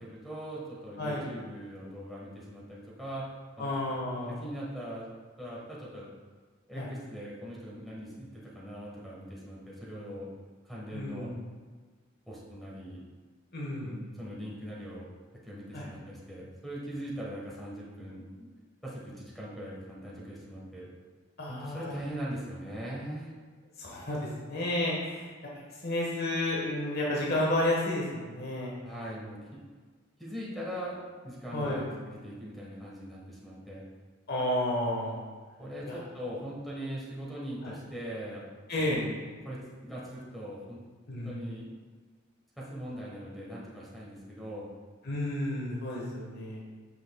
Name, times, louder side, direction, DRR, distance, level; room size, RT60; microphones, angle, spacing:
voice 1, 0.0-3.3 3.6-3.7 4.3-5.1 5.4-6.1 6.7-10.3 10.6-11.3 12.3-13.0 13.8-15.1 15.4-18.5 18.8-20.9 21.5-23.3 28.8-29.6 30.2-33.8 35.6-38.5 38.8-39.2 39.4-40.8 41.2-41.7 42.6-44.6, equal, ahead, -6 dB, 1.4 m, -41 dB
voice 2, 3.6-4.3 6.8-6.9 10.9-11.4 13.5-14.0 15.7-15.8 21.4-21.9 23.8-24.2 24.5-28.7 31.5-31.8 34.3-35.2 35.8-36.0 37.6-37.7 38.7-39.0 41.1-41.4 45.0-46.6, left 1 dB, 50° left, -4 dB, 1.4 m, -31 dB
8.9 x 6.3 x 2.3 m, 1.4 s
head